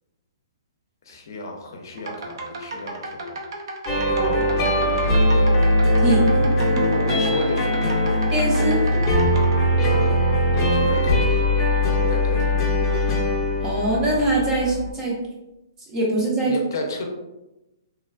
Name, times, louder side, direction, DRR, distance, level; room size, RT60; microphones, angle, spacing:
voice 1, 1.0-3.4 4.1-4.8 5.3-5.5 6.0-8.0 8.7-8.8 9.7-10.2 10.5-11.5 11.9-12.6 16.4-17.0, left 2 dB, 60° left, 2 dB, 0.5 m, -33 dB
sound 1, 1.9-9.6, right 2 dB, 70° right, 0.6 m, -34 dB
sound 2, 3.9-14.9, left 1 dB, 20° left, 0.7 m, -20 dB
voice 2, 8.3-8.8 13.6-15.2 15.9-16.5, right 2 dB, 20° right, -4 dB, 0.6 m, -23 dB
3.0 x 2.2 x 2.3 m, 0.97 s
hypercardioid pair, 170°, 2 cm